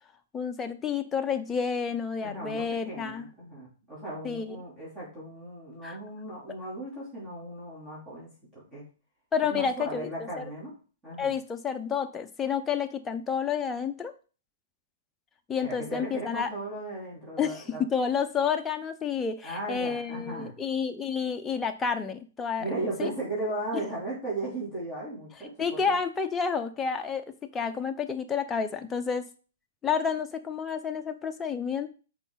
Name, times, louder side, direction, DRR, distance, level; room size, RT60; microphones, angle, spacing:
voice 1, 0.3-3.3 4.2-4.6 5.8-6.0 9.3-10.4 11.2-14.1 15.5-16.5 17.4-22.7 23.0-23.1 23.7-23.8 25.6-29.3 29.8-31.9, left 6 dB, 15° left, 6 dB, 0.6 m, -30 dB
voice 2, 2.2-8.3 8.7-8.8 9.5-10.8 11.0-11.3 15.6-17.8 19.4-20.5 22.6-25.9, right 2 dB, 15° right, -8 dB, 3.1 m, -36 dB
6.0 x 4.6 x 3.9 m, 0.36 s
hypercardioid pair, 140°, 0 cm